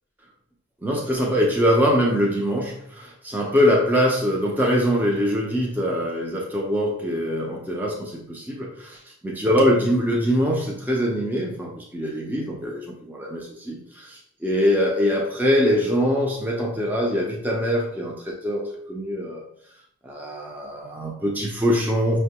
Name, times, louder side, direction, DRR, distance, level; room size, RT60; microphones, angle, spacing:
voice 1, 0.8-9.0 9.2-19.4 20.0-22.2, equal, 10° right, -2 dB, 0.4 m, -23 dB
5.4 x 2.2 x 2.8 m, 0.68 s
head